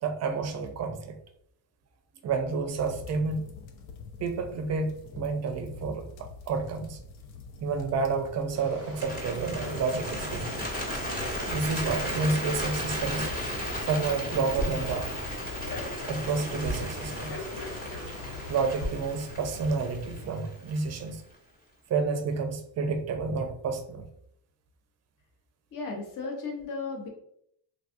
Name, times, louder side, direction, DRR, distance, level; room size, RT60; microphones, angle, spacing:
voice 1, 0.0-1.2 2.2-3.5 4.2-7.0 7.6-10.6 11.5-13.3 13.8-15.1 16.1-17.4 18.1-18.2 18.5-21.2 21.9-24.0, right 4 dB, 35° right, 6 dB, 0.5 m, -30 dB
sound 1, 2.7-20.2, left 4 dB, 85° left, 0.6 m, -45 dB
Frog, 8.5-18.9, left 1 dB, 65° left, 1.3 m, -40 dB
Bird, 8.9-21.1, equal, 20° left, 1.0 m, -35 dB
voice 2, 25.7-27.1, left 4 dB, 45° left, 0 dB, 0.8 m, -35 dB
3.5 x 2.3 x 2.5 m, 0.70 s
cardioid pair, 120°, 46 cm